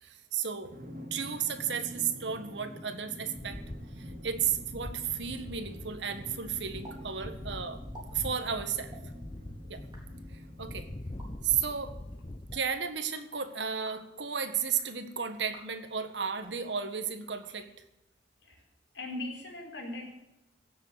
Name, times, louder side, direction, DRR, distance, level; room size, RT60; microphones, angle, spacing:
voice 1, 0.0-0.8 1.1-3.6 4.0-7.8 8.1-9.0 9.7-9.8 10.3-10.9 11.4-12.0 12.5-17.8, right 7 dB, 80° right, 9 dB, 1.6 m, -33 dB
Drum, 0.7-11.7, equal, 50° right, 2.8 m, -48 dB
sound 1, 3.4-12.6, left 1 dB, 30° left, 0.8 m, -43 dB
sound 2, 6.8-7.0 7.2-7.3 7.8-8.1 8.8-9.0 9.7-10.0 11.0-11.3 12.3-12.6 13.7-14.1 14.6-14.9 15.4-15.7 16.3-16.6 17.3-18.0, right 2 dB, 25° right, 4.1 m, -52 dB
voice 2, 18.9-20.0, left 2 dB, 75° left, 1 dB, 4.6 m, -39 dB
17.0 x 7.6 x 7.8 m, 0.90 s
head